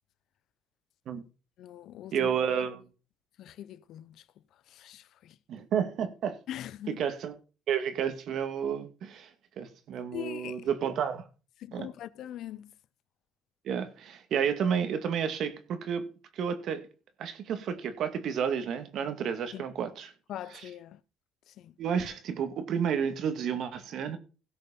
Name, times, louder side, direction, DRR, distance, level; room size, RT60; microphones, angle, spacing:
voice 1, 1.6-2.3 3.4-4.3 4.5-5.4 6.5-7.0 10.1-10.6 11.6-12.7 19.5-19.7 20.3-21.0 21.5-21.7, left 12 dB, 65° left, 0.7 m, -42 dB
voice 2, 2.1-2.9 5.5-6.4 7.0-7.4 7.7-9.3 9.6-11.3 11.7-11.9 13.6-16.1 16.3-16.8 17.2-20.1 21.8-24.2, right 7 dB, 60° right, 2.2 m, -31 dB
17.0 x 6.5 x 4.3 m
cardioid pair, 120°, 0 cm